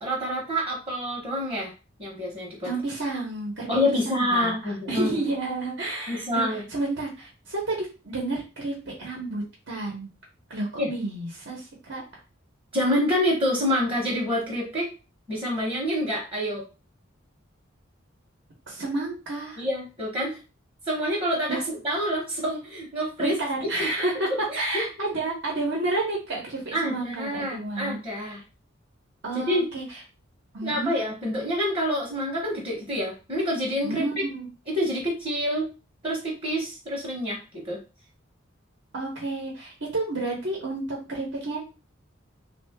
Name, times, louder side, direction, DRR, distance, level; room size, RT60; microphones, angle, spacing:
voice 1, 0.0-1.7 2.0-2.7 3.7-5.2 6.1-6.6 10.8-10.9 12.7-14.9 15.3-16.6 19.6-20.4 20.9-23.4 23.8-23.9 24.5-24.8 26.7-28.4 29.3-29.7 30.6-34.0 34.7-35.7 36.0-37.8, equal, 30° right, -3 dB, 1.1 m, -27 dB
voice 2, 2.6-4.6 4.9-10.1 10.5-12.0 18.7-19.6 21.5-21.6 23.2-24.3 24.5-28.4 29.2-30.0 30.5-31.0 33.8-34.5 38.9-41.6, right 2 dB, 65° right, -2 dB, 1.1 m, -31 dB
3.3 x 2.5 x 3.5 m, 0.31 s
head